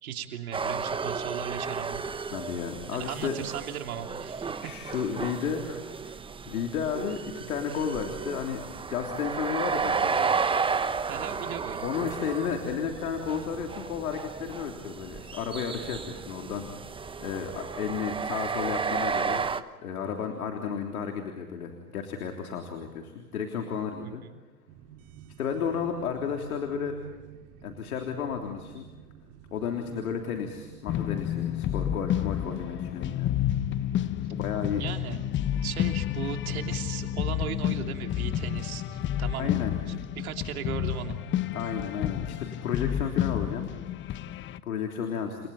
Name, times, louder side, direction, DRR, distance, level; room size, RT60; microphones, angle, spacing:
voice 1, 0.0-2.0 2.9-4.7 11.1-11.8 24.0-24.1 34.8-35.3 35.6-39.6 39.9-41.2, right 9 dB, 75° right, 4 dB, 3.1 m, -37 dB
sound 1, 0.5-19.6, right 5 dB, 10° right, 1.1 m, -33 dB
voice 2, 2.3-3.3 4.6-10.3 11.8-19.5 19.8-24.2 25.4-27.0 27.6-28.8 29.5-33.3 34.3-34.8 39.4-39.8 41.5-43.7 44.6-45.4, left 7 dB, 75° left, 3 dB, 3.5 m, -33 dB
sound 2, 24.7-41.6, right 9 dB, 45° right, 3.1 m, -51 dB
sound 3, 30.9-44.6, left 11 dB, 25° left, 0.9 m, -30 dB
30.0 x 28.0 x 4.3 m, 1.3 s
hypercardioid pair, 105°, 44 cm